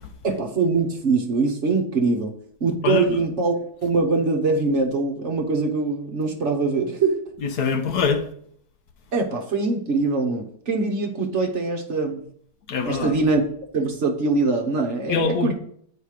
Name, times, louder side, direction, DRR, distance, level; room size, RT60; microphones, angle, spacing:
voice 1, 0.2-2.3 2.6-3.5 3.8-7.2 9.1-12.2 12.8-13.4 13.7-15.5, right 3 dB, 50° right, 1.2 m, -23 dB
voice 2, 2.8-3.2 7.4-8.2 12.7-13.1 15.1-15.5, left 5 dB, 70° left, 1.3 m, -23 dB
8.9 x 4.8 x 4.9 m
omnidirectional pair, 1.8 m